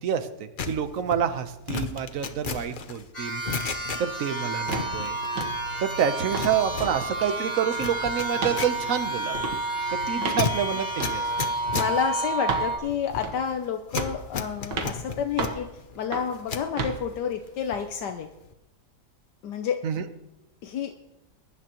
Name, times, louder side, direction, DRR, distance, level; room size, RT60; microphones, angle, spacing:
voice 1, 0.0-3.4 4.0-5.2 5.8-9.4 9.9-11.2 19.8-20.0, right 8 dB, 55° right, 10 dB, 1.2 m, -28 dB
sound 1, 0.6-4.3 4.6-5.8 6.1-16.7 17.1-18.0 18.2-18.5, left 5 dB, 50° left, 0.6 m, -35 dB
sound 2, 3.1-12.8, right 2 dB, 15° left, 5.5 m, -30 dB
sound 3, 4.7-4.9 5.4-5.6 6.0-6.5 6.8-7.0 7.3-7.9 8.4-8.6 9.4-9.6 10.2-10.5 11.0-11.2 11.8-11.9 12.5-12.7 13.2-13.5 14.0-14.2 14.7-14.9 15.4-15.6 16.1-16.3 16.8-17.0, right 4 dB, 90° right, 2.0 m, -32 dB
voice 2, 11.7-15.7 16.0-18.3 19.4-19.8 20.6-21.0, left 7 dB, 80° left, 5 dB, 1.4 m, -30 dB
22.0 x 11.0 x 3.0 m, 0.95 s
omnidirectional pair, 1.8 m